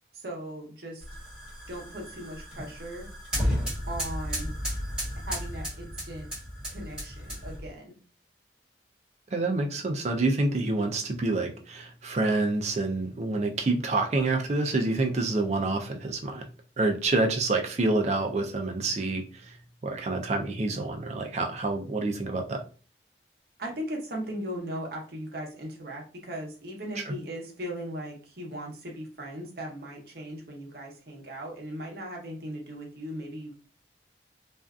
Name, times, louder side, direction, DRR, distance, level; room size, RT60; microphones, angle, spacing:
voice 1, 0.1-1.1 1.7-3.1 3.9-4.5 5.2-6.3 6.7-7.9 23.6-33.5, equal, 60° right, -1 dB, 0.8 m, -38 dB
sound 1, 1.0-7.7, equal, 5° right, 1.1 m, -33 dB
voice 2, 9.3-16.5 16.8-19.5 19.8-22.6 27.1-27.2, right 2 dB, 40° right, 4 dB, 0.4 m, -27 dB
2.5 x 2.3 x 2.3 m, 0.38 s
head